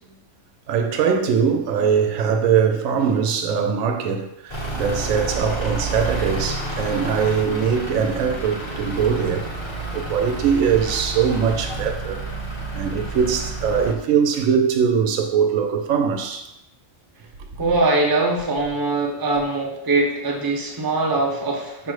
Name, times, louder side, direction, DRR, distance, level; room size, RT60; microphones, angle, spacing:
voice 1, 0.7-12.2 12.7-16.5, right 7 dB, 85° right, 5 dB, 1.0 m, -21 dB
Truck / Idling, 4.5-13.9, right 2 dB, 30° left, 0.6 m, -29 dB
voice 2, 17.6-21.9, right 2 dB, 30° right, -1 dB, 0.4 m, -22 dB
5.4 x 2.0 x 4.7 m, 0.84 s
omnidirectional pair, 1.4 m